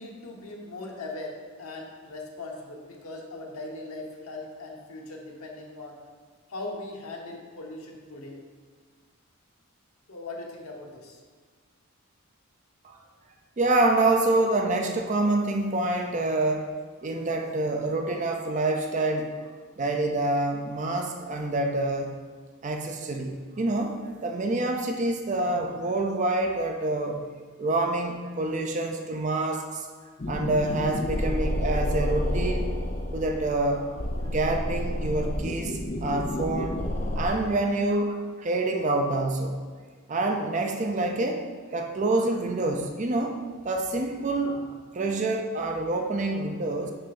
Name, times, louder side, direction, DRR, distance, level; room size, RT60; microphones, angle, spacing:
voice 1, 0.0-1.3 1.6-6.0 6.5-8.4 10.1-11.2, left 2 dB, 85° left, -1 dB, 1.1 m, -39 dB
voice 2, 13.6-16.7 17.0-19.3 19.8-22.2 22.6-27.3 27.6-29.9 30.3-32.7 33.1-36.8 37.1-39.6 40.1-46.9, right 2 dB, 35° right, 4 dB, 0.4 m, -27 dB
sound 1, 30.2-37.3, left 1 dB, 35° left, 0.6 m, -29 dB
6.7 x 3.4 x 5.3 m, 1.5 s
head